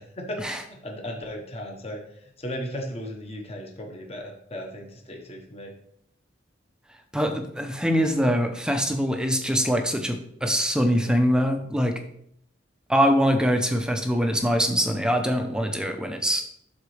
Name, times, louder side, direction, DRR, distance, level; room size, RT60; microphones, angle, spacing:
voice 1, 0.0-5.7, equal, 30° left, 1 dB, 1.2 m, -36 dB
voice 2, 7.1-12.0 12.9-16.4, equal, 5° right, 5 dB, 0.7 m, -23 dB
11.5 x 4.0 x 3.3 m, 0.70 s
head